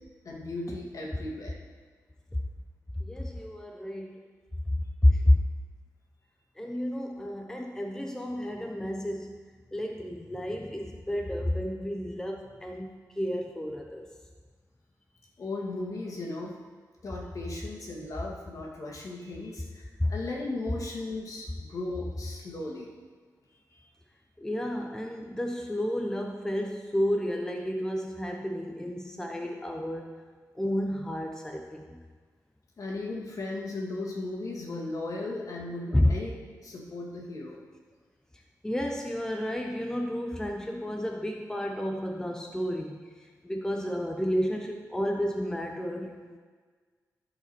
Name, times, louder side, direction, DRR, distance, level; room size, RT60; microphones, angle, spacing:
voice 1, 0.2-1.5 15.4-16.6 17.0-22.9 23.7-23.8 32.8-37.6, left 2 dB, 60° left, -2 dB, 2.1 m, -36 dB
voice 2, 3.0-4.2 5.0-5.4 6.6-9.4 9.7-14.1 20.0-20.1 24.4-30.1 30.6-32.0 35.9-36.2 38.6-43.0 43.4-46.4, left 1 dB, 10° left, 3 dB, 0.7 m, -30 dB
14.5 x 5.0 x 4.4 m, 1.5 s
cardioid pair, 90°, 7 cm